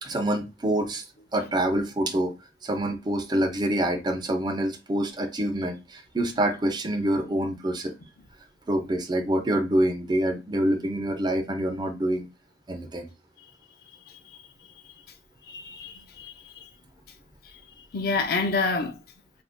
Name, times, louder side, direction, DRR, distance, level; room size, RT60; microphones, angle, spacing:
voice 1, 0.0-1.0 1.3-2.3 2.6-7.9 8.7-12.3 12.7-13.1, right 1 dB, 25° right, 0.4 m, -26 dB
voice 2, 15.5-16.7 17.9-19.0, left 4 dB, 55° left, 0.5 m, -28 dB
2.8 x 2.6 x 3.5 m
head